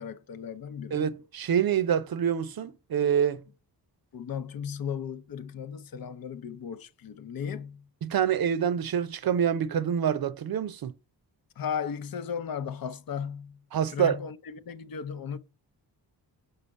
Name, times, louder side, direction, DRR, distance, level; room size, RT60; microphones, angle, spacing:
voice 1, 0.0-1.1 4.1-7.9 11.6-13.6 13.9-15.4, left 7 dB, 60° left, 0.7 m, -36 dB
voice 2, 0.9-3.4 8.0-10.9 13.7-14.2, right 8 dB, 60° right, 0.6 m, -26 dB
5.6 x 3.8 x 5.2 m
cardioid pair, 70°, 41 cm